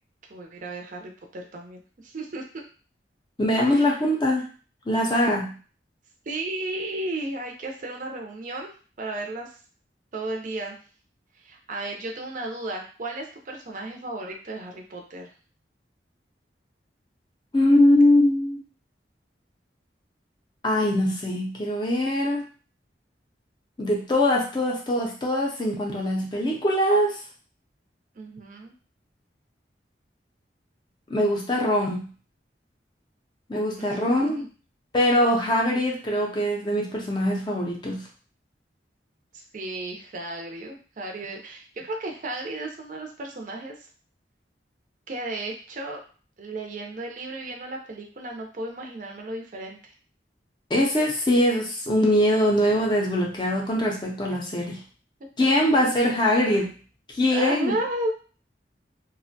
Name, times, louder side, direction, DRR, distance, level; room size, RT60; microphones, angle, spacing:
voice 1, 0.3-2.6 3.7-3.9 6.3-8.7 9.0-9.5 10.1-10.8 11.4-15.3 28.2-28.7 33.8-34.5 39.3-43.8 45.1-46.0 46.4-49.9 55.4-55.5 57.3-58.1, right 2 dB, 45° right, 2 dB, 0.4 m, -34 dB
voice 2, 3.4-4.4 4.9-5.5 17.5-18.6 20.6-22.5 23.8-27.2 31.1-32.1 33.5-34.4 34.9-38.0 50.7-54.8 55.4-56.7 57.1-57.7, left 1 dB, 25° left, -1 dB, 0.5 m, -22 dB
2.5 x 2.1 x 2.6 m, 0.38 s
head